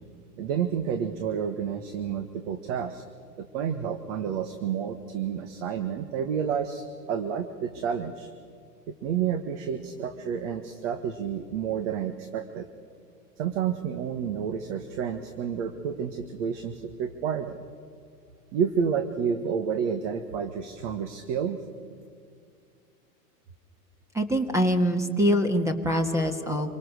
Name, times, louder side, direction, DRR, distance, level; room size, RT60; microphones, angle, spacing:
voice 1, 0.4-3.0 3.4-8.3 8.9-12.7 13.4-17.6 18.5-21.6, right 7 dB, 50° right, 8 dB, 1.6 m, -30 dB
voice 2, 24.1-26.7, equal, 5° right, 7 dB, 1.5 m, -24 dB
27.0 x 19.0 x 6.6 m, 2.2 s
hypercardioid pair, 135°, 48 cm